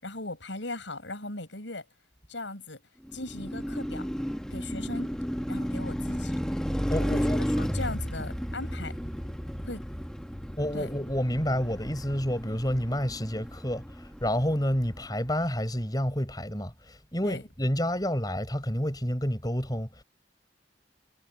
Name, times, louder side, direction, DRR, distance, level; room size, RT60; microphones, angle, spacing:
voice 1, 0.0-1.8 2.3-2.8 3.1-4.1 4.5-5.1 5.5-6.4 7.0-7.2 7.6-9.0 9.6-9.8 10.7-10.9 17.2-17.4, left 2 dB, 75° left, 6.5 m, -38 dB
Car passing by, 3.0-15.3, equal, 5° left, 1.3 m, -33 dB
voice 2, 6.9-7.4 10.6-20.0, equal, 20° left, 6.0 m, -29 dB
head